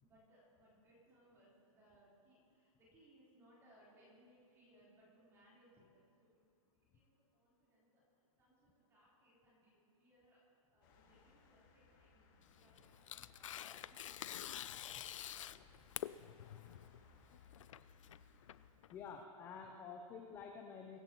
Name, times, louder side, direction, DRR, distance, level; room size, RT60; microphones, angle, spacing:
voice 1, 0.0-6.4 6.7-8.0 8.4-10.4 10.7-12.3 12.5-14.6 16.5-16.7, right 1 dB, 15° right, -7 dB, 3.9 m, -68 dB
sound 1, 10.8-18.7, left 4 dB, 35° left, 1.9 m, -66 dB
Tearing, 12.4-19.2, left 11 dB, 60° left, 0.4 m, -48 dB
voice 2, 18.9-21.0, left 6 dB, 15° left, 3 dB, 0.6 m, -50 dB
23.5 x 12.0 x 3.0 m, 2.3 s
hypercardioid pair, 160°, 19 cm